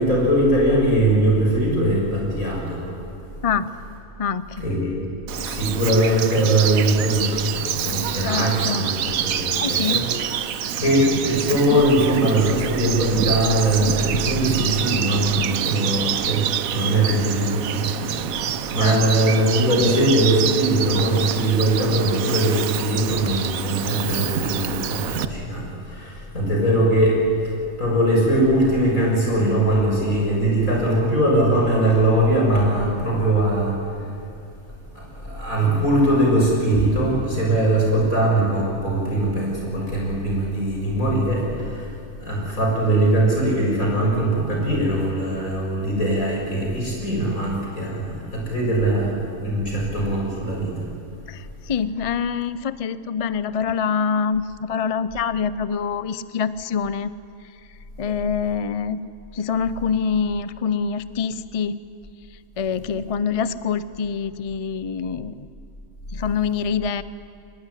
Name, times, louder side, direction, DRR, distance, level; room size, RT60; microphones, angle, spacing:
voice 1, 0.0-2.9 4.6-5.0 5.4-10.1 10.8-27.5 27.8-34.1 34.9-41.9 42.2-50.9, right 1 dB, 75° left, -2 dB, 7.3 m, -21 dB
voice 2, 4.2-4.6 8.2-8.9 9.5-10.0 18.8-19.0 51.3-57.1 58.0-59.0 59.3-61.8 62.6-65.5 66.1-67.0, left 6 dB, 40° left, 14 dB, 0.5 m, -25 dB
Bird vocalization bird call bird song, 5.3-25.2, right 9 dB, 80° right, 1.2 m, -27 dB
23.5 x 20.5 x 10.0 m, 2.6 s
omnidirectional pair, 1.5 m